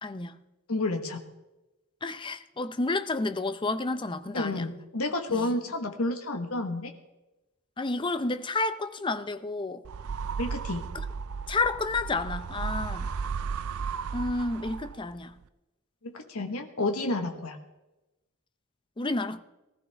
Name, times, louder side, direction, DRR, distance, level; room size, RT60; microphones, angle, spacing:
voice 1, 0.0-0.4 2.0-4.7 5.3-5.4 7.8-9.8 11.5-13.1 14.1-15.3 19.0-19.4, left 3 dB, 20° left, 0.6 m, -30 dB
voice 2, 0.7-1.2 4.3-6.9 10.4-10.8 16.0-17.6, left 2 dB, 75° left, 1.3 m, -30 dB
sound 1, 9.8-15.2, right 5 dB, 70° right, 0.5 m, -34 dB
19.5 x 14.0 x 3.4 m
head